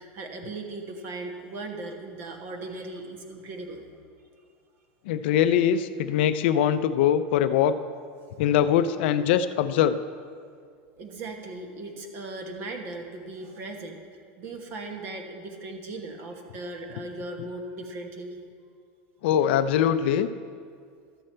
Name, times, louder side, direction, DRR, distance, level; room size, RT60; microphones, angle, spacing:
voice 1, 0.0-3.9 11.0-14.0 14.4-18.4, right 2 dB, 40° right, 3 dB, 1.2 m, -38 dB
voice 2, 5.1-7.8 8.4-10.0 17.4-17.5 19.2-20.3, left 9 dB, 65° left, 12 dB, 0.4 m, -22 dB
12.5 x 7.8 x 4.4 m, 2.1 s
supercardioid pair, 170°, 6 cm